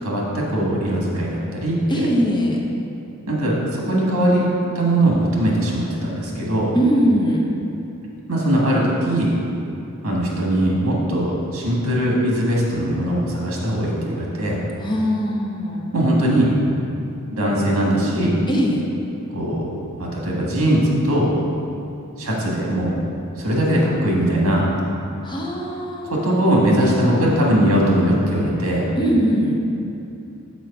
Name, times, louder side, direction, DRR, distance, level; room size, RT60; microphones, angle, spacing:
voice 1, 0.0-2.1 3.3-4.5 4.7-6.7 8.3-9.3 10.0-14.6 15.9-16.5 17.3-18.3 19.3-19.7 20.0-21.3 22.2-22.9 23.4-24.7 26.1-28.9, right 1 dB, 80° right, -3 dB, 1.6 m, -20 dB
voice 2, 1.9-2.6 6.7-7.4 14.8-15.8 18.5-18.8 25.2-26.4 26.8-27.0 29.0-29.6, equal, 20° left, -2 dB, 0.8 m, -21 dB
6.2 x 4.6 x 5.9 m, 2.7 s
head